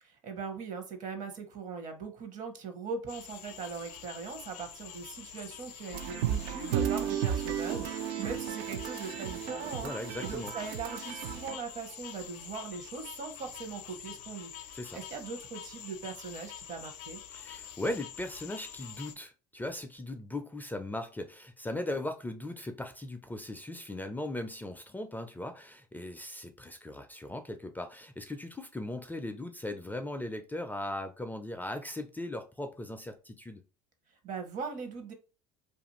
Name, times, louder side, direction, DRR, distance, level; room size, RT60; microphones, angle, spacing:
voice 1, 0.0-9.9 10.2-17.2 34.2-35.1, right 5 dB, 50° right, 0.8 m, -40 dB
sound 1, 3.1-19.1, left 9 dB, 65° left, 0.5 m, -46 dB
sound 2, 5.9-11.6, right 9 dB, 75° right, 0.4 m, -34 dB
voice 2, 9.5-10.5 14.7-15.0 17.3-33.6, left 1 dB, 10° left, 0.4 m, -38 dB
2.5 x 2.4 x 3.0 m
hypercardioid pair, 80°, 17 cm